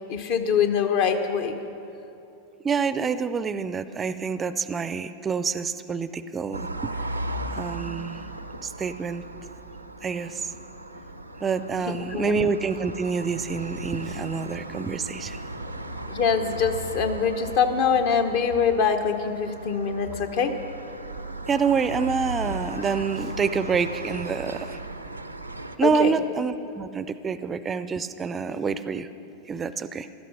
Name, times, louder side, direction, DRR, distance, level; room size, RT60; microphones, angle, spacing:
voice 1, 0.1-1.6 11.9-12.3 16.1-20.5 25.8-26.1, left 6 dB, 45° left, 7 dB, 1.1 m, -24 dB
voice 2, 2.6-7.0 7.5-8.2 8.6-9.2 10.0-10.5 11.4-15.4 21.5-24.8 25.8-29.1 29.5-30.1, right 5 dB, 20° right, 14 dB, 0.5 m, -27 dB
sound 1, 6.5-25.8, right 2 dB, 85° right, 0.6 m, -36 dB
16.0 x 12.5 x 6.1 m, 2.7 s
figure-of-eight pair, 90°, 0 cm